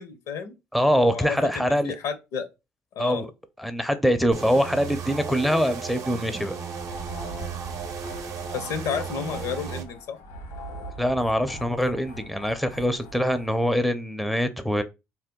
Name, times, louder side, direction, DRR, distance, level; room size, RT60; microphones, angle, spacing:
voice 1, 0.0-0.5 1.1-2.5 2.9-3.3 8.5-10.2, left 7 dB, 70° left, 0.6 m, -31 dB
voice 2, 0.7-2.0 3.0-3.3 3.6-6.6 11.0-14.8, equal, ahead, 0.5 m, -24 dB
sound 1, 4.3-9.8, right 6 dB, 60° right, 0.6 m, -35 dB
sound 2, 6.7-13.6, right 1 dB, 90° left, 1.1 m, -42 dB
2.7 x 2.2 x 3.6 m
supercardioid pair, 70°, 6 cm